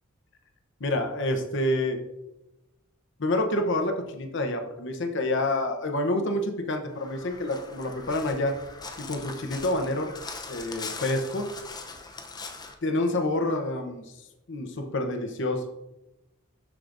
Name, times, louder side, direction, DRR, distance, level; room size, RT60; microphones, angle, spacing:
voice 1, 0.8-2.0 3.2-8.6 9.1-10.1 10.5-11.5 12.8-14.1 14.5-15.6, left 1 dB, 65° left, 5 dB, 0.9 m, -28 dB
Crow, 6.9-12.8, left 4 dB, 20° left, 0.6 m, -41 dB
12.0 x 5.0 x 2.6 m, 0.94 s
head